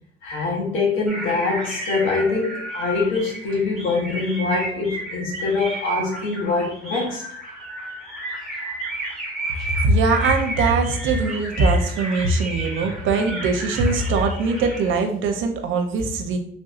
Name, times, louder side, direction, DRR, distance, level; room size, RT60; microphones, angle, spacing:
voice 1, 0.2-7.2, left 3 dB, 80° left, -2 dB, 0.9 m, -24 dB
sound 1, 1.1-15.0, right 2 dB, ahead, 1.2 m, -32 dB
voice 2, 9.8-16.4, right 3 dB, 80° right, 5 dB, 0.6 m, -21 dB
3.3 x 2.6 x 2.4 m, 0.65 s
cardioid pair, 90°, 20 cm